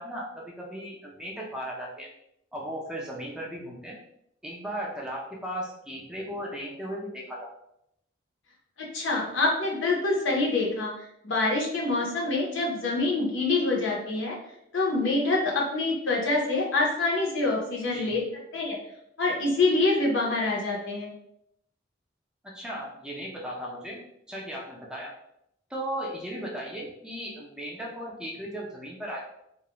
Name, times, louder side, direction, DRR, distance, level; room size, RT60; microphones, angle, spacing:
voice 1, 0.0-2.1 2.5-4.0 4.4-7.5 17.9-18.2 22.4-25.1 25.7-29.2, equal, 5° right, -3 dB, 0.4 m, -36 dB
voice 2, 8.9-10.9 11.2-14.3 14.7-18.2 18.5-18.8 19.2-21.1, left 2 dB, 80° left, -2 dB, 0.7 m, -26 dB
2.4 x 2.1 x 2.9 m, 0.77 s
head